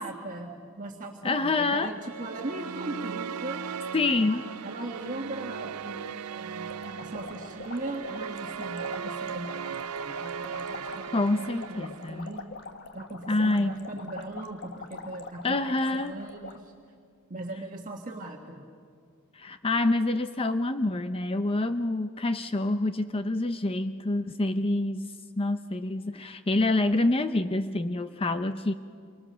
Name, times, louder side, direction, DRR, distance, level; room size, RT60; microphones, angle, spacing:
voice 1, 0.0-3.6 4.2-12.5 12.9-16.7 17.3-18.6, right 2 dB, 35° right, 0 dB, 1.7 m, -39 dB
voice 2, 1.2-1.9 3.9-4.4 11.1-12.4 13.3-13.8 15.4-16.1 19.3-25.1 25.4-28.7, left 2 dB, 25° left, 10 dB, 0.6 m, -27 dB
sound 1, 1.9-12.3, right 7 dB, 90° right, 0.6 m, -38 dB
sound 2, 6.6-16.6, left 3 dB, 50° left, 1.4 m, -44 dB
28.0 x 24.0 x 6.8 m, 2.2 s
head